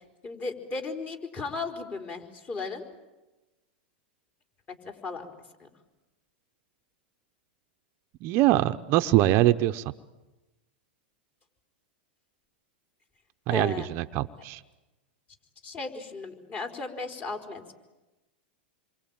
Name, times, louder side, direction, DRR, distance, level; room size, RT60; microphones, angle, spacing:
voice 1, 0.0-2.8 4.8-5.3 5.6-5.7 13.5-13.9 15.6-17.7, left 4 dB, 30° left, 3 dB, 4.4 m, -36 dB
voice 2, 8.2-9.9 13.5-14.6, right 15 dB, 45° right, 9 dB, 0.9 m, -23 dB
28.0 x 23.5 x 8.9 m, 1.1 s
hypercardioid pair, 120°, 6 cm